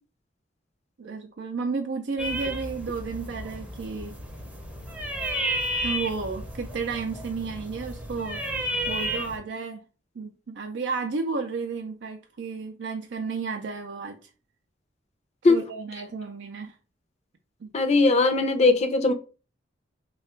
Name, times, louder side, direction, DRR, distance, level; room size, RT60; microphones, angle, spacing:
voice 1, 1.0-4.2 5.8-8.4 8.9-9.8 10.2-14.3 15.5-16.8 17.6-17.7, right 4 dB, 65° right, 0.4 m, -32 dB
sound 1, 2.2-9.4, equal, 10° right, 0.6 m, -32 dB
voice 2, 17.7-19.1, left 3 dB, 35° left, 0.5 m, -19 dB
3.2 x 2.3 x 4.2 m
head